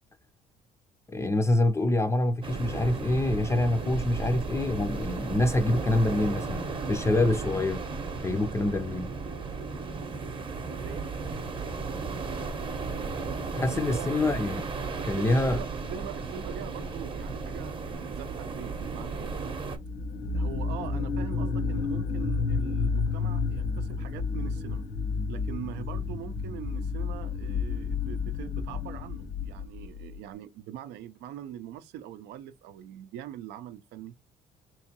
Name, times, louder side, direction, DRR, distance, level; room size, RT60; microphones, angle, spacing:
voice 1, 1.1-7.8 8.2-9.1 13.5-14.7 15.0-15.6, left 2 dB, 15° left, 0.4 m, -26 dB
sound 1, 2.4-19.8, right 4 dB, 30° right, 0.8 m, -35 dB
voice 2, 10.8-11.1 13.7-14.4 15.0-19.6 20.3-24.8 25.3-34.1, right 10 dB, 85° right, 0.5 m, -42 dB
sound 2, 19.7-30.2, left 4 dB, 85° left, 0.8 m, -31 dB
3.6 x 3.0 x 2.8 m
cardioid pair, 110°, 17 cm